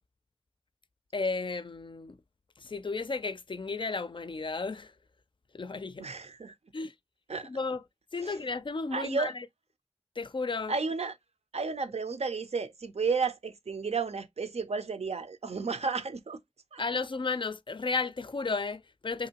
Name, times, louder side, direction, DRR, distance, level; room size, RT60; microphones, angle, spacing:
voice 1, 1.1-2.2 2.6-4.9 5.5-6.1 6.7-6.9 7.5-7.8 8.1-9.4 10.2-10.7 16.8-19.3, left 4 dB, 50° left, 0.4 m, -33 dB
voice 2, 6.0-6.5 7.3-7.5 8.2-8.4 8.9-9.3 10.7-11.2 11.5-16.4 16.7-16.8, right 4 dB, 80° right, 0.5 m, -32 dB
2.9 x 2.6 x 2.8 m
wide cardioid pair, 40°, 11 cm